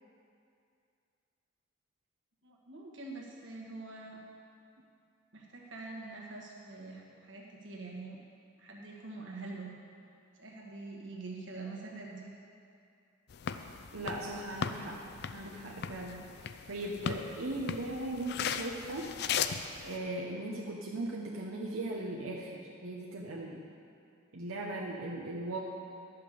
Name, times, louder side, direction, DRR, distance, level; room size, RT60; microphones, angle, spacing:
voice 1, 2.4-4.2 5.3-8.2 8.6-9.7 10.4-12.3, right 3 dB, 60° right, -2 dB, 1.6 m, -45 dB
sound 1, 13.3-20.0, left 7 dB, 50° left, 0.4 m, -38 dB
voice 2, 13.9-15.0 15.3-16.3 16.7-19.1 19.8-23.6 24.3-25.6, right 1 dB, 85° right, -3 dB, 1.0 m, -38 dB
11.5 x 5.7 x 6.8 m, 2.5 s
head